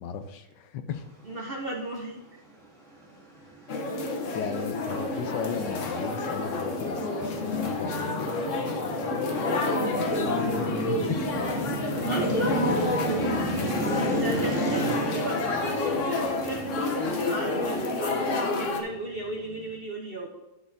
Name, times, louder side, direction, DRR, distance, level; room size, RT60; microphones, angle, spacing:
voice 1, 0.0-1.0 4.3-8.3 10.3-11.2 12.5-12.8, left 7 dB, 75° left, 8 dB, 1.3 m, -35 dB
voice 2, 1.2-2.2 9.3-9.9 10.4-10.5 12.0-12.7 14.1-20.4, right 1 dB, 50° right, 0 dB, 0.7 m, -35 dB
sound 1, 3.0-19.8, right 1 dB, ahead, 2.0 m, -34 dB
sound 2, 3.7-18.8, left 2 dB, 55° left, 1.1 m, -29 dB
11.5 x 6.1 x 2.7 m, 1.0 s
omnidirectional pair, 1.9 m